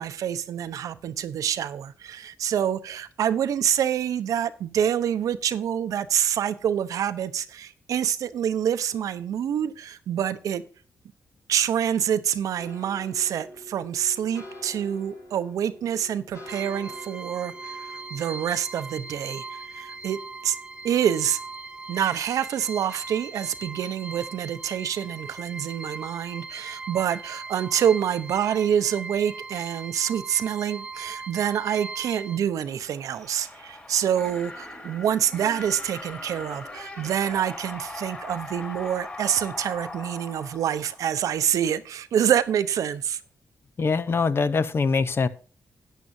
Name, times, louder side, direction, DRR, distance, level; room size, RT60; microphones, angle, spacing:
voice 1, 0.0-10.6 11.5-20.6 20.8-21.4 21.9-43.2, right 9 dB, 90° right, 0.8 m, -26 dB
sound 1, 12.6-21.8 22.2-23.2 23.5-23.9 24.2-24.4, left 1 dB, 80° left, 6.2 m, -47 dB
sound 2, 16.5-32.4, right 3 dB, 20° right, 0.7 m, -39 dB
sound 3, 32.6-41.4, left 2 dB, 25° left, 5.6 m, -40 dB
voice 2, 43.8-45.3, left 4 dB, 45° left, 0.7 m, -23 dB
13.5 x 9.2 x 2.7 m
cardioid pair, 95°, 6 cm